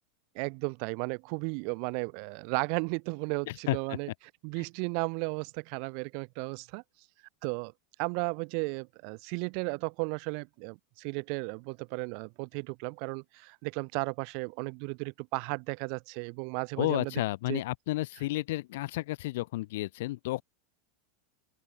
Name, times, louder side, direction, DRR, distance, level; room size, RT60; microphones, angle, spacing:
voice 1, 0.4-4.1 4.4-6.8 7.4-7.7 8.0-17.1 17.5-17.6, right 40 dB or more, 50° right, 0.4 m, -34 dB
voice 2, 3.5-4.0 4.6-4.7 16.8-20.4, left 18 dB, 70° left, 0.6 m, -32 dB
open air
supercardioid pair, 145°, 0 cm